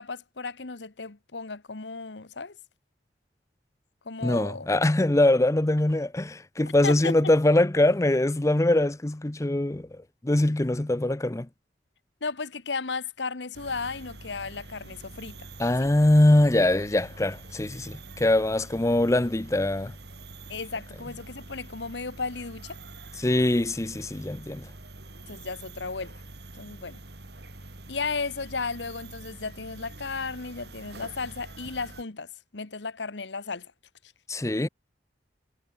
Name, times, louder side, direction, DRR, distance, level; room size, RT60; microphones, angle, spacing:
voice 1, 0.0-2.6 4.0-4.7 6.8-7.2 12.2-15.5 15.8-15.9 20.5-22.8 25.3-26.1 26.6-27.0 27.9-33.7, left 4 dB, 85° left, 1.3 m, -34 dB
voice 2, 4.2-9.9 10.2-11.5 15.6-19.9 23.2-24.7 34.3-34.7, left 1 dB, 15° left, 0.6 m, -23 dB
sound 1, 13.5-32.0, right 2 dB, 65° right, 4.7 m, -45 dB
head